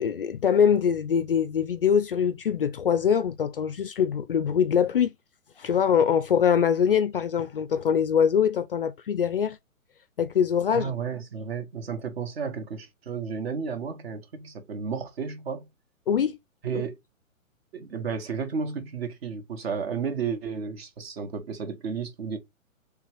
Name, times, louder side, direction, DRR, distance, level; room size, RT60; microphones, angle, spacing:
voice 1, 0.0-5.1 5.6-9.6 10.2-10.9 16.1-16.3, left 7 dB, 45° left, 0.4 m, -23 dB
voice 2, 10.7-15.6 16.6-17.0 17.7-22.4, right 6 dB, 45° right, 1.2 m, -32 dB
3.3 x 3.2 x 4.5 m
figure-of-eight pair, 130°, 41 cm